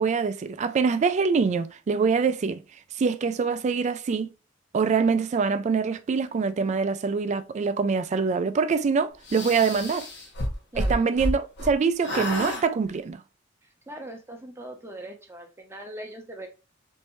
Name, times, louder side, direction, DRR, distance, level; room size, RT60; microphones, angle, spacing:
voice 1, 0.0-2.6 3.0-4.3 4.7-10.1 10.8-13.2, right 5 dB, 35° right, 0.3 m, -24 dB
sound 1, 9.3-11.7 12.0-12.6, equal, 60° left, 0.7 m, -29 dB
voice 2, 13.6-16.5, right 1 dB, 15° right, 0.7 m, -41 dB
3.2 x 2.7 x 3.0 m
head